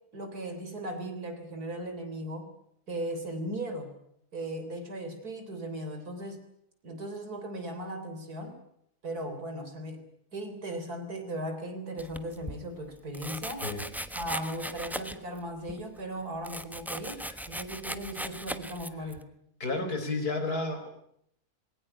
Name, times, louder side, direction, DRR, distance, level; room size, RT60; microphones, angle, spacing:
voice 1, 0.1-2.5 2.9-3.9 4.3-6.5 6.8-8.6 9.0-10.0 10.3-13.7 14.1-19.3, right 1 dB, 70° right, 7 dB, 4.1 m, -37 dB
Domestic sounds home sounds, 12.0-12.6 13.1-15.4 15.7-19.2, equal, ahead, 0.9 m, -38 dB
voice 2, 19.6-20.9, left 2 dB, 75° left, 7 dB, 4.4 m, -31 dB
21.5 x 18.5 x 10.0 m, 0.73 s
omnidirectional pair, 1.7 m